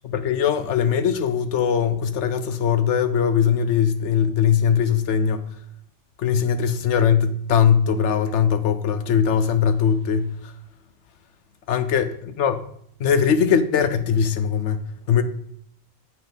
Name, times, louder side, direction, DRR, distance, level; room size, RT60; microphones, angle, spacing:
voice 1, 0.0-5.5 6.2-10.5 11.7-12.6 13.0-15.2, left 7 dB, 90° left, 1.0 m, -21 dB
8.0 x 5.8 x 3.5 m
omnidirectional pair, 1.2 m